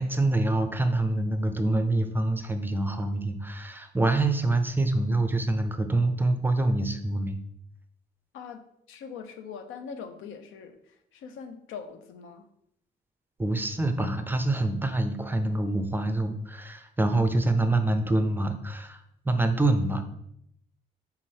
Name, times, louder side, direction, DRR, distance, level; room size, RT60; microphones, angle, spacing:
voice 1, 0.0-7.4 13.4-19.0 19.2-20.0, right 2 dB, 10° right, 7 dB, 0.5 m, -26 dB
voice 2, 8.3-12.5, left 6 dB, 90° left, 8 dB, 0.5 m, -42 dB
3.6 x 3.1 x 4.4 m, 0.74 s
cardioid pair, 90°, 20 cm